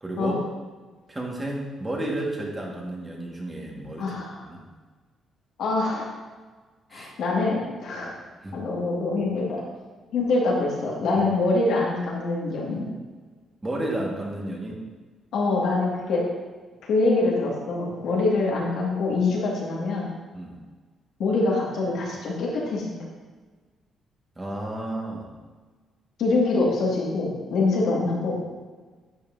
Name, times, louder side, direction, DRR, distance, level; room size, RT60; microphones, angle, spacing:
voice 1, 0.0-0.3 1.1-4.1 4.4-4.6 6.9-7.1 8.0-8.1 8.4-8.6 13.6-14.8 20.3-20.6 24.4-25.3, right 1 dB, 20° right, -2 dB, 1.6 m, -32 dB
voice 2, 4.0-4.4 5.6-6.0 6.9-8.1 8.5-9.6 10.1-12.9 15.3-16.2 16.8-20.1 21.2-23.0 26.2-28.4, left 3 dB, 75° left, -3 dB, 1.9 m, -24 dB
10.5 x 5.5 x 2.6 m, 1.4 s
cardioid pair, 90°, 0 cm